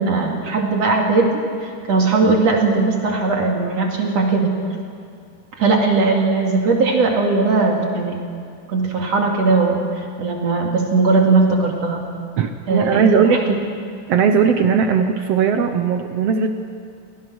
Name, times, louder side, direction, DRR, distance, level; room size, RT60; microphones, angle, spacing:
voice 1, 0.0-4.5 5.6-8.2 8.7-12.1 12.7-13.2, right 3 dB, 50° right, 1 dB, 3.2 m, -18 dB
voice 2, 12.4-13.4 14.1-16.5, right 6 dB, 75° right, 6 dB, 1.4 m, -18 dB
28.5 x 18.0 x 6.3 m, 2.3 s
omnidirectional pair, 4.1 m